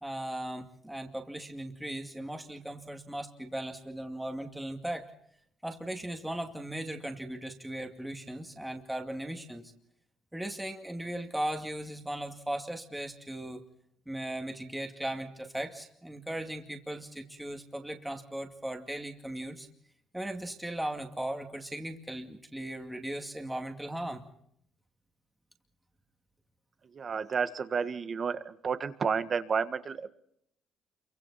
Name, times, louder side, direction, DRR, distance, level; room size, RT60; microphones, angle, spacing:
voice 1, 0.0-5.1 5.6-9.7 10.3-13.6 14.1-19.7 20.1-24.2, right 1 dB, 5° right, 4 dB, 2.3 m, -37 dB
voice 2, 26.9-30.1, right 6 dB, 40° right, 11 dB, 1.6 m, -31 dB
28.0 x 24.0 x 4.2 m, 0.71 s
cardioid pair, 115°, 0 cm